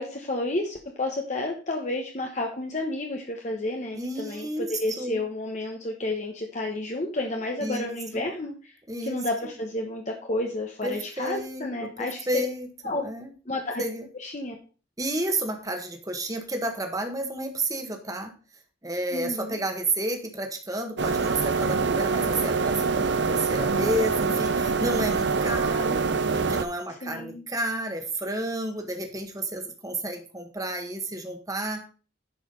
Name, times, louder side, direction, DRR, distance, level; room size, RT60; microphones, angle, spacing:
voice 1, 0.0-8.7 9.0-12.5 12.8-13.0 13.5-13.8 14.1-14.6 19.1-19.6 27.0-27.5, left 2 dB, 40° left, 2 dB, 1.1 m, -31 dB
voice 2, 3.9-4.7 5.0-5.2 7.6-8.2 8.9-9.2 10.8-13.3 13.8-14.1 15.0-18.3 18.8-26.0 26.3-31.8, right 1 dB, 20° right, 4 dB, 1.5 m, -31 dB
sound 1, 21.0-26.6, right 4 dB, 65° right, 0.8 m, -25 dB
10.5 x 5.0 x 5.3 m, 0.37 s
head